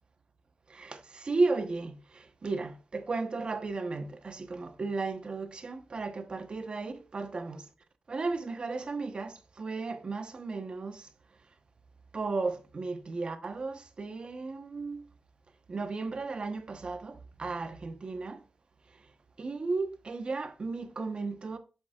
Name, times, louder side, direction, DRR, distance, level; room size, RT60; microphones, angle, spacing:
voice 1, 0.7-7.6 8.1-11.1 12.1-15.0 15.7-18.4 19.4-21.6, right 3 dB, 45° right, 1.0 m, -34 dB
7.5 x 7.1 x 2.4 m
cardioid pair, 90°, 2 cm